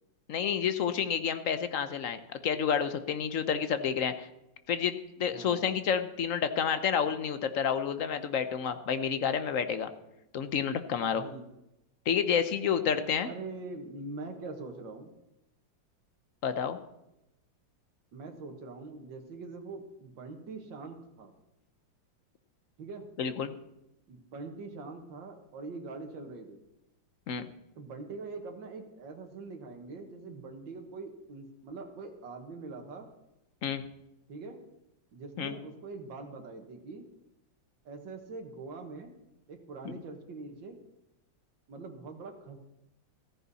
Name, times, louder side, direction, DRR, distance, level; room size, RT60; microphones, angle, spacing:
voice 1, 0.3-4.3 4.7-9.9 10.3-11.2 12.1-13.3 16.4-16.8 23.2-23.5 27.3-27.5 33.6-33.9 35.4-35.6 39.8-39.9, left 7 dB, 55° left, 11 dB, 0.9 m, -29 dB
voice 2, 5.3-5.6 11.1-11.4 13.2-15.1 18.1-21.3 22.8-23.1 24.1-26.6 27.8-33.1 34.3-34.6 35.1-37.0 37.9-39.1 39.5-40.8 41.7-42.6, right 3 dB, 75° right, 3 dB, 2.1 m, -43 dB
14.5 x 14.0 x 4.1 m, 0.90 s
omnidirectional pair, 2.1 m